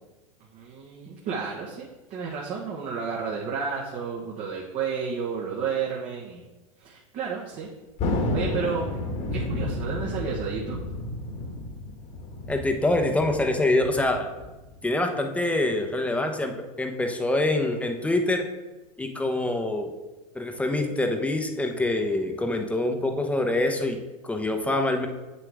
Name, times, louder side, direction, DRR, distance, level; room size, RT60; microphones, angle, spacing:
voice 1, 0.4-6.4 6.8-7.7 8.3-8.9 9.3-10.8, right 6 dB, 45° right, -3 dB, 1.4 m, -31 dB
Thunder, 8.0-14.8, left 2 dB, 40° left, 1.6 m, -31 dB
voice 2, 12.5-14.3 14.8-18.4 19.0-19.9 20.3-24.0 24.2-25.1, left 2 dB, 5° left, 4 dB, 1.0 m, -25 dB
8.1 x 6.9 x 3.6 m, 1.1 s
hypercardioid pair, 105°, 18 cm